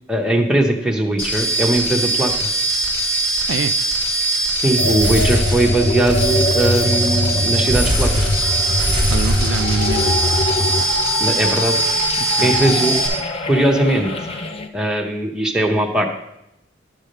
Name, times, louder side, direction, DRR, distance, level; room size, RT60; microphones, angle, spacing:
voice 1, 0.1-2.5 4.5-8.3 11.2-11.8 12.4-13.0 13.5-14.1 14.7-16.1, right 1 dB, 5° right, 0 dB, 0.8 m, -19 dB
sound 1, 1.2-13.1, right 1 dB, 45° left, 2.7 m, -21 dB
sound 2, 4.8-14.7, left 2 dB, 30° left, 0.4 m, -23 dB
sound 3, 7.9-14.5, left 2 dB, 70° left, 1.6 m, -37 dB
voice 2, 9.1-10.2 12.2-12.7, right 6 dB, 65° right, 11 dB, 0.3 m, -26 dB
10.0 x 3.5 x 6.5 m, 0.84 s
head